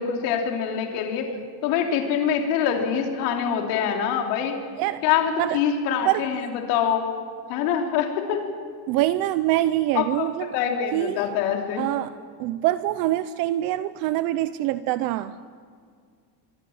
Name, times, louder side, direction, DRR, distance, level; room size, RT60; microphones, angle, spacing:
voice 1, 0.0-1.3 1.6-4.5 5.0-6.4 6.7-7.0 7.5-8.4 9.9-10.3 10.5-11.9, left 8 dB, 70° left, 2 dB, 3.2 m, -24 dB
voice 2, 8.9-10.6 10.9-11.3 11.8-12.1 12.4-15.3, right 15 dB, 45° right, 14 dB, 0.6 m, -24 dB
26.0 x 24.0 x 7.1 m, 2.1 s
cardioid pair, 170°, 49 cm